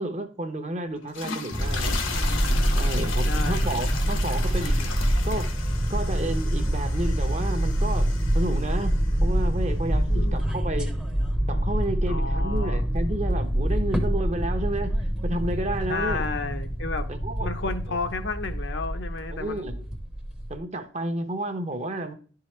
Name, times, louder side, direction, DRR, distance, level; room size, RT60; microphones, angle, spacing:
voice 1, 0.0-2.3 2.7-4.9 5.2-5.5 5.9-11.0 11.5-14.9 15.2-16.3 17.1-17.5 17.9-18.0 19.3-19.8 20.5-22.1, right 1 dB, 35° right, 8 dB, 0.8 m, -31 dB
sound 1, 1.0-9.3, left 5 dB, 75° left, 1.1 m, -36 dB
sound 2, 1.5-20.6, equal, 5° right, 0.7 m, -26 dB
voice 2, 3.2-3.7 10.1-10.4 12.1-12.8 15.9-17.1 17.4-19.7, left 3 dB, 60° left, 7 dB, 0.7 m, -32 dB
11.0 x 4.7 x 3.1 m, 0.42 s
head